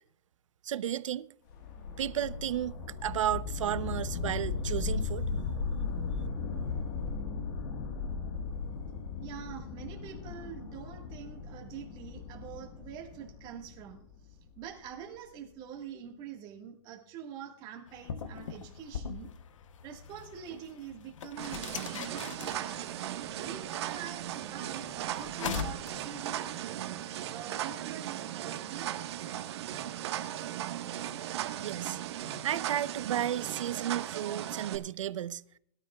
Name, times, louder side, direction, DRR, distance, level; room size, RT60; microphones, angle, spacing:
voice 1, 0.6-1.3 2.0-5.3 31.6-32.0 32.4-35.4, right 11 dB, 80° right, 0.8 m, -33 dB
sound 1, 1.5-14.6, left 4 dB, 40° left, 1.6 m, -37 dB
voice 2, 9.2-19.3 19.8-22.9 23.3-26.8 27.3-28.9, right 8 dB, 25° right, 1.7 m, -45 dB
sound 2, 17.9-26.5, left 7 dB, 80° left, 0.9 m, -42 dB
sound 3, 21.4-34.8, right 11 dB, 55° right, 1.5 m, -37 dB
21.5 x 12.5 x 2.4 m
hypercardioid pair, 160°, 16 cm